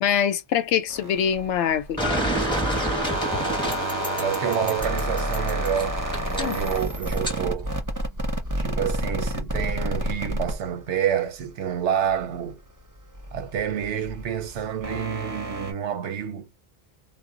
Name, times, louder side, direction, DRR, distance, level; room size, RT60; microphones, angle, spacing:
voice 1, 0.0-2.0 6.4-6.6, left 8 dB, 85° left, 0.9 m, -24 dB
sound 1, 0.9-11.5 11.9-15.7, right 1 dB, 25° right, 0.5 m, -30 dB
sound 2, 2.0-7.4, equal, 5° left, 0.8 m, -29 dB
voice 2, 4.2-7.7 8.6-12.6 13.3-16.5, right 9 dB, 90° right, 1.0 m, -28 dB
2.2 x 2.0 x 3.7 m
omnidirectional pair, 1.2 m